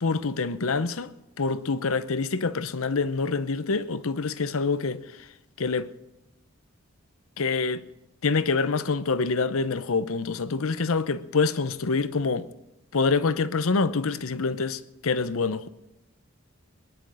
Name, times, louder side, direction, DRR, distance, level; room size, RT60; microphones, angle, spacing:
voice 1, 0.0-1.1 1.4-5.0 5.6-5.9 7.4-7.8 8.2-12.5 12.9-15.7, left 4 dB, 80° left, 0.7 m, -26 dB
19.5 x 10.5 x 6.4 m
head